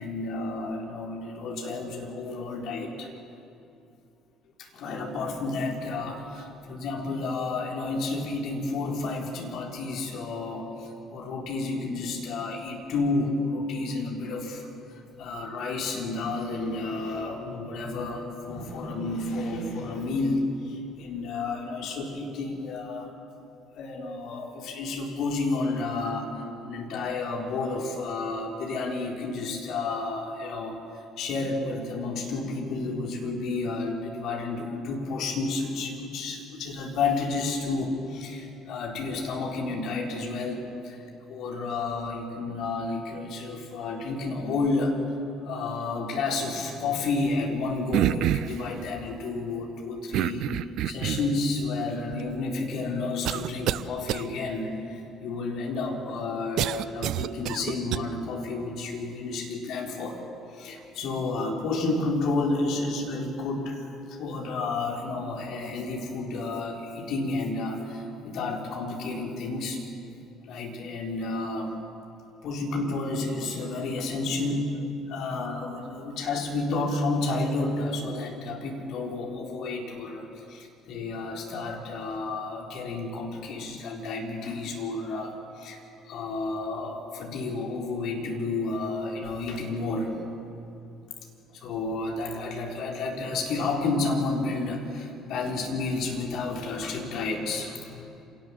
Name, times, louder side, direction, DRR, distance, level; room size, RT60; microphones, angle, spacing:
voice 1, 0.0-3.1 4.6-14.7 14.9-23.1 23.8-41.0 41.3-45.0 45.4-50.5 50.8-60.2 60.5-69.8 70.5-71.7 72.4-74.8 75.1-85.8 86.1-90.2 91.5-98.3, left 3 dB, 55° left, 0 dB, 4.1 m, -31 dB
sound 1, 47.9-48.6 50.1-51.4 52.1-52.2 53.2-53.8 54.1-54.2 56.6-58.0, right 12 dB, 55° right, 0.6 m, -27 dB
26.5 x 18.5 x 7.4 m, 2.6 s
figure-of-eight pair, 50°, 0 cm